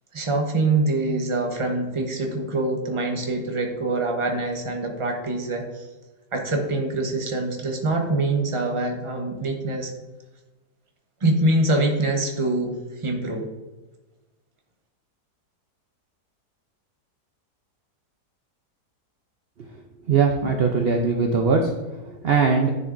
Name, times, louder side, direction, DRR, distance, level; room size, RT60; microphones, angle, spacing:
voice 1, 0.1-5.9 6.3-9.9 11.2-13.5, right 2 dB, 25° right, 2 dB, 0.8 m, -24 dB
voice 2, 20.1-21.7 22.1-22.7, right 5 dB, 60° right, 2 dB, 0.6 m, -20 dB
10.5 x 6.6 x 2.6 m, 1.2 s
omnidirectional pair, 1.8 m